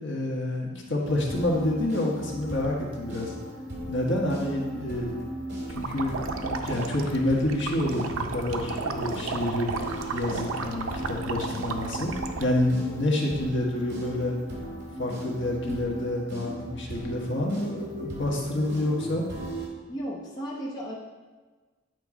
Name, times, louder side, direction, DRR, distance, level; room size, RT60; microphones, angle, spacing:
voice 1, 0.0-3.3 3.9-5.1 5.7-9.7 10.1-12.1 12.4-14.4 15.0-19.2, left 1 dB, 60° left, -2 dB, 1.4 m, -28 dB
sound 1, 1.0-19.7, equal, 55° right, 2.1 m, -38 dB
sound 2, 5.7-12.5, right 4 dB, 85° right, 0.6 m, -33 dB
voice 2, 19.9-20.9, equal, 20° left, -5 dB, 0.8 m, -34 dB
9.2 x 4.7 x 3.7 m, 1.3 s
head